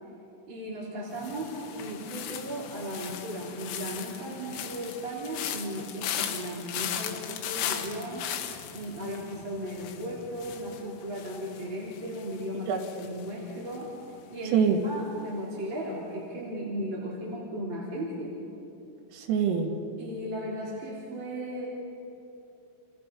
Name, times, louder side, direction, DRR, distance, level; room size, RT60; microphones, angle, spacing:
voice 1, 0.5-8.3 8.7-13.9 14.3-18.4 20.0-21.7, equal, 25° right, -5 dB, 3.6 m, -36 dB
sound 1, 1.1-14.2 14.4-14.9, left 10 dB, 85° left, 3.9 m, -38 dB
voice 2, 12.7-13.1 14.5-14.8 19.1-19.8, right 7 dB, 90° right, 1 dB, 4.7 m, -25 dB
29.0 x 27.5 x 5.4 m, 2.8 s
omnidirectional pair, 5.8 m